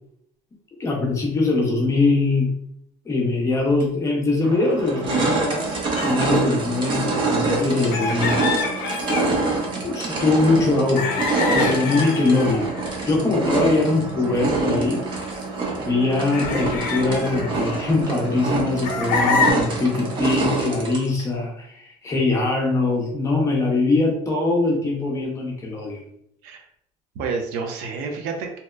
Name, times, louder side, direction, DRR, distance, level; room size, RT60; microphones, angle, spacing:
voice 1, 0.8-2.5 3.0-5.7 6.0-8.4 9.8-11.2 11.5-12.7 13.1-15.0 15.8-26.0, left 3 dB, 20° left, -2 dB, 0.6 m, -22 dB
sound 1, 3.8-3.9 4.4-21.2, right 3 dB, 35° right, 0.5 m, -26 dB
sound 2, 5.9-6.2 7.9-9.3 10.9-13.2 14.4-14.6 15.3-15.4 16.3-18.4 18.8-19.5, left 4 dB, 90° left, 0.5 m, -26 dB
voice 2, 13.7-14.4 26.4-26.7 27.1-28.6, right 5 dB, 85° right, 3 dB, 0.6 m, -30 dB
2.8 x 2.0 x 2.3 m, 0.70 s
cardioid pair, 165°, 15 cm